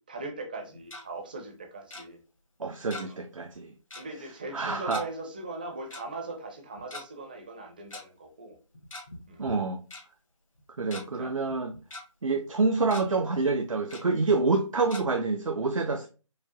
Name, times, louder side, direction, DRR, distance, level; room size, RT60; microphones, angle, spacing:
voice 1, 0.1-2.2 3.0-3.2 3.9-8.6 9.3-9.4 11.1-11.3, right 2 dB, 15° right, 0.4 m, -40 dB
Tick-tock, 0.6-1.0 1.9-2.0 2.9-3.3 3.5-3.6 3.9-4.1 4.9-5.0 5.9-6.0 6.8-7.0 7.9-8.0 8.7-9.2 9.5-9.6 9.9-10.0 10.6-11.0 11.5-12.0 12.4-12.6 12.9-13.0 13.9-14.0 14.9-15.0, left 2 dB, 80° left, 1.6 m, -41 dB
voice 2, 2.6-3.7 4.5-5.0 9.4-9.8 10.8-11.7 12.2-16.1, right 3 dB, 75° right, 0.5 m, -27 dB
4.8 x 2.1 x 2.8 m
figure-of-eight pair, 155°, 17 cm